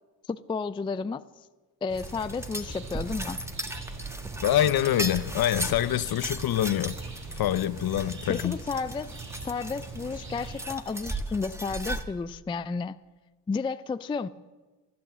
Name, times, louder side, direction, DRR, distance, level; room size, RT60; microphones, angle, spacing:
voice 1, 0.3-1.2 1.8-3.4 8.3-9.1 9.4-13.0 13.5-14.3, left 4 dB, 10° left, 0.4 m, -32 dB
sound 1, 1.9-10.6, right 4 dB, 40° right, 5.3 m, -42 dB
sound 2, 2.0-12.0, right 1 dB, 5° right, 1.3 m, -37 dB
voice 2, 4.4-7.0 7.4-8.6, left 12 dB, 50° left, 0.7 m, -25 dB
13.5 x 12.0 x 7.4 m
supercardioid pair, 65°, 46 cm